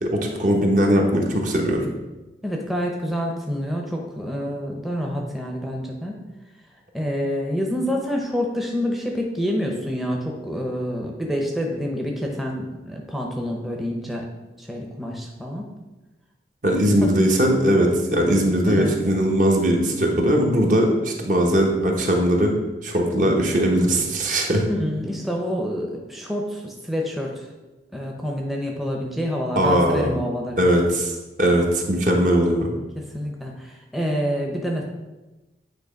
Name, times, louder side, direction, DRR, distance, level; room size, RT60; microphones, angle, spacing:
voice 1, 0.0-1.9 16.6-22.5 22.8-24.6 29.5-30.1 30.6-32.7, equal, 45° right, 1 dB, 1.1 m, -20 dB
voice 2, 2.4-6.2 6.9-14.3 14.6-15.7 17.0-17.1 18.7-18.9 24.7-27.5 27.9-30.6 33.1-34.8, equal, ahead, 0 dB, 0.7 m, -27 dB
8.9 x 3.1 x 5.1 m, 1.1 s
head